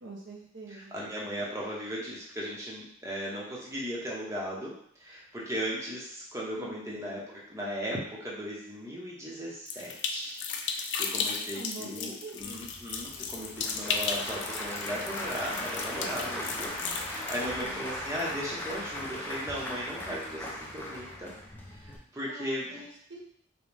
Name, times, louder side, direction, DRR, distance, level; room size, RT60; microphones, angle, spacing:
voice 1, 0.0-1.1 6.6-7.0 11.1-12.7 17.4-17.9 22.1-23.2, right 2 dB, 65° right, -1 dB, 0.7 m, -45 dB
voice 2, 0.7-21.3 21.7-22.8, equal, 15° right, -5 dB, 0.9 m, -37 dB
sound 1, 9.7-17.5, left 5 dB, 65° left, 0.4 m, -35 dB
Applause / Crowd, 12.4-22.0, left 1 dB, 10° left, 0.5 m, -38 dB
5.1 x 2.2 x 3.3 m, 0.65 s
head